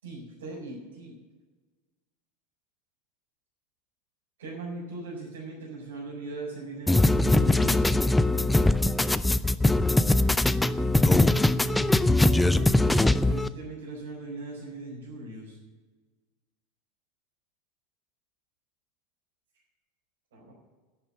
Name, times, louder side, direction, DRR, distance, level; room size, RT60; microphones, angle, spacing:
voice 1, 0.0-1.2 4.4-7.9 10.8-15.6 20.3-20.5, right 2 dB, 75° right, -7 dB, 4.7 m, -40 dB
sound 1, 6.9-13.5, left 2 dB, 5° left, 0.6 m, -21 dB
11.0 x 10.0 x 9.1 m, 1.3 s
hypercardioid pair, 85°, 0 cm